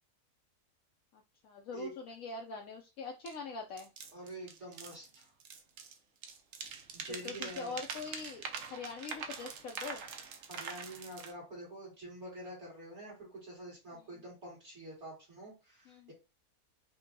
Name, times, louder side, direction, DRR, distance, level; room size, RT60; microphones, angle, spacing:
voice 1, 1.1-3.9 7.1-8.4 8.7-10.0 15.9-16.1, left 4 dB, 70° left, 1 dB, 0.9 m, -43 dB
sound 1, 3.3-3.4 3.8-6.0 6.2-11.3, right 6 dB, 65° right, 0.8 m, -44 dB
voice 2, 4.1-5.3 6.9-7.8 10.5-16.1, right 1 dB, 45° right, -4 dB, 2.4 m, -47 dB
5.1 x 2.3 x 2.6 m, 0.28 s
omnidirectional pair, 1.6 m